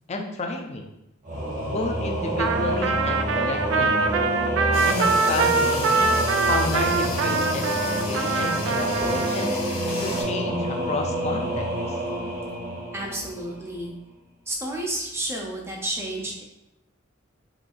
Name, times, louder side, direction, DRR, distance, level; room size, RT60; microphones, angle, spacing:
voice 1, 0.1-0.9 1.6-4.2 4.9-6.2 6.4-9.6 10.0-11.7, left 2 dB, 35° left, 3 dB, 0.5 m, -31 dB
Singing / Musical instrument, 1.2-13.8, equal, 40° right, 0.9 m, -28 dB
Trumpet, 2.4-9.5, right 4 dB, 65° right, 0.3 m, -24 dB
sound 1, 4.7-10.2, left 3 dB, 85° left, 1.4 m, -35 dB
voice 2, 12.9-13.9 14.5-16.4, right 1 dB, 15° right, -1 dB, 0.6 m, -31 dB
3.8 x 3.3 x 2.5 m, 0.86 s
head